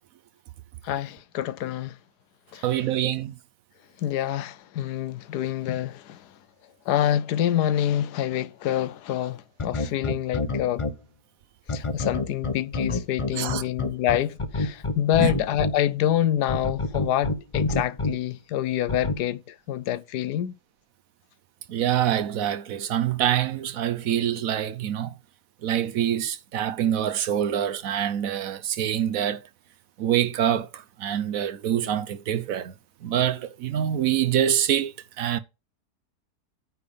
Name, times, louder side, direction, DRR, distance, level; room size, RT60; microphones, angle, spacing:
voice 1, 0.8-2.0 2.5-2.6 4.0-6.3 6.9-10.9 11.7-20.5, left 11 dB, 80° left, 1.2 m, -26 dB
voice 2, 2.6-3.3 13.3-13.6 15.2-15.3 21.7-25.1 25.6-29.4 30.0-32.7 33.0-35.4, right 10 dB, 65° right, 1.0 m, -25 dB
sound 1, 9.6-10.9 11.7-15.7 16.5-18.1 18.9-19.1, left 3 dB, 30° left, 0.5 m, -26 dB
9.3 x 3.4 x 6.8 m
omnidirectional pair, 1.7 m